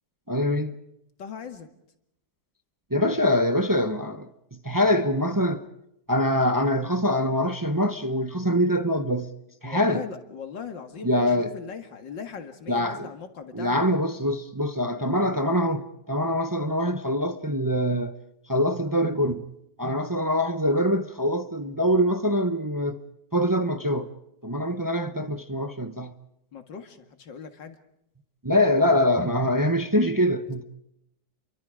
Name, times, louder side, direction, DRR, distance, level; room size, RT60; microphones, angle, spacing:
voice 1, 0.3-0.7 2.9-5.6 6.1-9.3 9.6-10.0 11.0-11.5 12.7-13.1 13.5-18.1 18.5-19.5 19.8-23.0 23.3-24.1 24.4-26.1 28.4-30.6, equal, 20° right, 0.5 m, -24 dB
voice 2, 1.2-1.7 9.6-13.9 26.5-27.8, left 6 dB, 85° left, 2.6 m, -39 dB
29.5 x 23.5 x 5.0 m
omnidirectional pair, 1.9 m